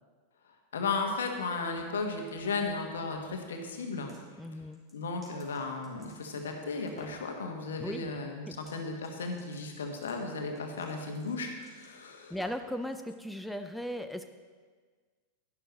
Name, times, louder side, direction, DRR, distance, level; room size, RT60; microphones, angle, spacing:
voice 1, 0.7-4.1 4.9-12.3, left 4 dB, 65° left, 3 dB, 1.4 m, -35 dB
sound 1, 3.8-4.2 4.7-6.5 6.9-7.3 8.5-8.8 9.0-12.8, right 1 dB, 20° right, 3.0 m, -57 dB
voice 2, 4.4-4.8 7.8-8.1 8.5-8.6 12.3-14.3, equal, ahead, 7 dB, 0.4 m, -37 dB
11.5 x 11.0 x 3.1 m, 1.5 s
figure-of-eight pair, 90°, 0 cm